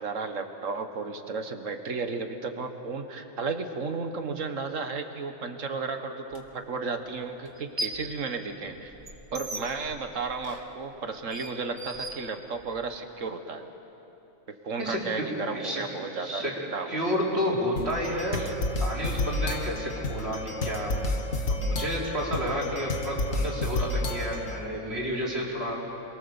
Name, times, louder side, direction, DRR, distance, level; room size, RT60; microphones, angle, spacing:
voice 1, 0.0-8.9 9.3-13.6 14.6-17.0 18.3-18.5, right 4 dB, 70° right, 7 dB, 1.8 m, -33 dB
sound 1, 6.3-6.4 7.4-8.1 8.5-12.8, right 2 dB, 25° right, 1.6 m, -39 dB
voice 2, 14.8-15.8 16.2-16.6 16.9-18.4 18.8-20.9 21.5-25.8, equal, 50° right, -4 dB, 4.5 m, -30 dB
sound 2, 17.8-24.6, left 2 dB, 75° left, 2.1 m, -30 dB
28.0 x 22.0 x 7.2 m, 3.0 s
omnidirectional pair, 1.4 m